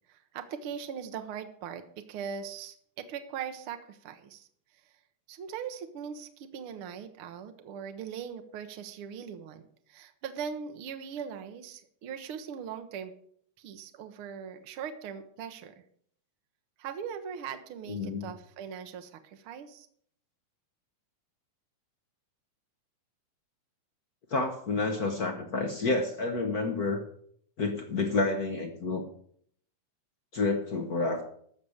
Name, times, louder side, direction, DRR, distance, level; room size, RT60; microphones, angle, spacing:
voice 1, 0.1-4.5 4.8-4.9 5.3-9.6 9.9-13.1 13.6-15.7 16.8-19.9, right 7 dB, 65° right, 7 dB, 1.4 m, -40 dB
voice 2, 17.9-18.3 24.3-27.0 27.6-29.0 30.3-31.2, left 3 dB, 65° left, 4 dB, 0.9 m, -29 dB
14.0 x 6.5 x 7.1 m, 0.64 s
omnidirectional pair, 3.5 m